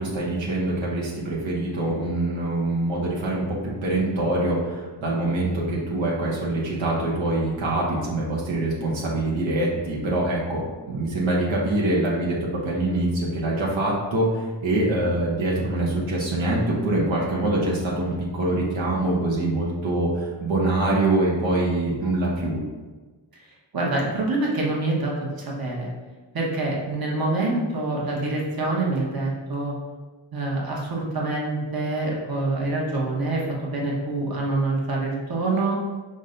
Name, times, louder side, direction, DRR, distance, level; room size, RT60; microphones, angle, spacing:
voice 1, 0.0-10.6 10.9-12.4 12.6-22.6, right 2 dB, 85° right, -5 dB, 0.9 m, -24 dB
voice 2, 23.7-25.9 26.3-29.7 30.3-35.7, right 2 dB, 50° right, -3 dB, 1.0 m, -26 dB
5.2 x 2.1 x 3.8 m, 1.3 s
wide cardioid pair, 75°, 45 cm